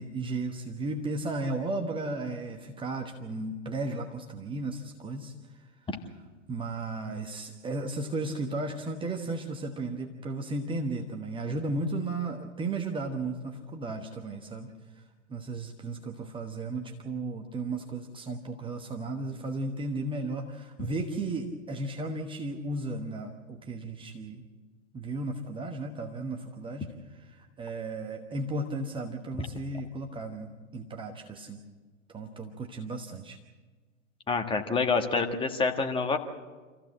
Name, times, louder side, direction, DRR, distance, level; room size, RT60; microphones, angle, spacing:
voice 1, 0.0-5.7 6.5-14.7 14.9-15.0 15.3-24.4 24.9-31.6 32.1-33.4, right 2 dB, 15° right, 3 dB, 1.0 m, -35 dB
voice 2, 34.3-36.2, left 4 dB, 15° left, 4 dB, 1.6 m, -27 dB
26.5 x 15.0 x 7.7 m, 1.4 s
figure-of-eight pair, 100°, 40 cm